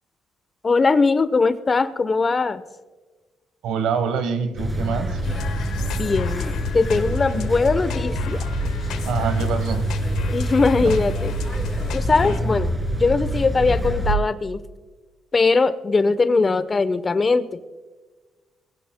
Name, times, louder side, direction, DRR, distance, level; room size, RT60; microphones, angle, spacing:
voice 1, 0.6-2.6 5.9-6.4 6.7-8.4 10.3-11.3 11.9-14.6 15.3-17.6, left 4 dB, 35° left, 13 dB, 0.9 m, -20 dB
voice 2, 3.6-5.2 9.0-10.0 10.8-11.0, right 6 dB, 90° right, 10 dB, 1.2 m, -25 dB
sound 1, 4.6-14.1, right 1 dB, 10° right, 3.0 m, -26 dB
sound 2, 5.2-12.4, left 7 dB, 85° left, 1.0 m, -32 dB
24.0 x 16.5 x 2.2 m, 1.3 s
cardioid pair, 90°, 0 cm